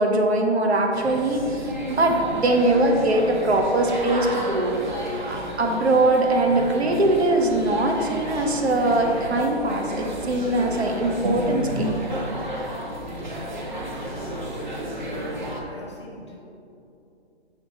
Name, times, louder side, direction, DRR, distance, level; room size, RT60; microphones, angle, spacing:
voice 1, 0.0-4.8 5.2-11.9, right 2 dB, 70° right, 3 dB, 0.9 m, -22 dB
sound 1, 0.9-15.6, equal, 45° right, 0.8 m, -32 dB
voice 2, 13.8-15.4 15.7-16.4, equal, 25° left, -3 dB, 0.7 m, -40 dB
6.2 x 3.0 x 5.2 m, 2.7 s
hypercardioid pair, 175°, 33 cm